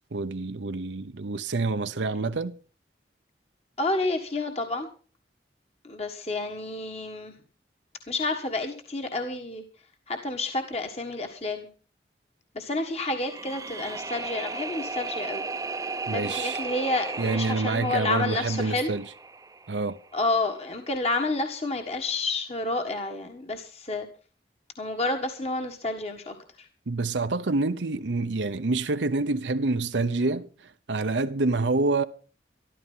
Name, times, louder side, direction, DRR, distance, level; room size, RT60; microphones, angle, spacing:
voice 1, 0.1-2.5 16.1-16.6 17.2-19.0 19.7-20.0 26.9-30.5 30.9-32.0, right 3 dB, 85° right, 0.8 m, -27 dB
voice 2, 3.8-4.9 5.8-7.3 8.1-9.6 10.1-11.7 12.5-15.4 16.1-18.9 20.1-24.1 24.8-26.7, left 2 dB, 35° left, 1.5 m, -30 dB
sound 1, 13.1-20.2, right 3 dB, 20° right, 0.6 m, -35 dB
13.5 x 13.0 x 5.5 m
head